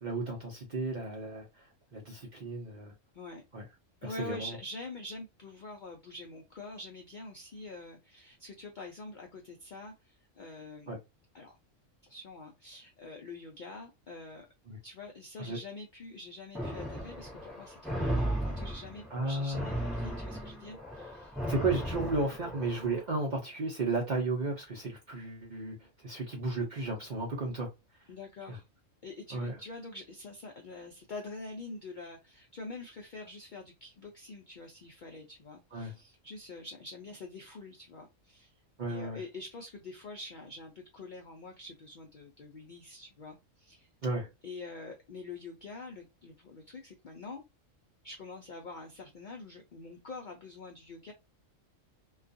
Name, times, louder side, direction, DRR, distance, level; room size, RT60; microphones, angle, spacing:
voice 1, 0.0-1.5 1.9-2.9 3.5-3.6 4.0-4.5 10.9-11.0 14.7-14.8 15.4-15.6 19.1-19.7 21.5-27.7 28.5-28.6 29.3-29.5 35.7-35.9 38.8-39.2 44.0-44.3, right 3 dB, 50° right, 0.5 m, -34 dB
voice 2, 4.0-11.0 11.3-11.6 12.0-14.5 14.8-21.4 28.1-28.6 29.0-38.5 38.9-43.9 44.4-47.4 48.0-51.1, left 3 dB, 65° left, 0.4 m, -45 dB
sound 1, 16.5-23.0, right 1 dB, ahead, 0.7 m, -36 dB
2.3 x 2.3 x 2.5 m
omnidirectional pair, 1.4 m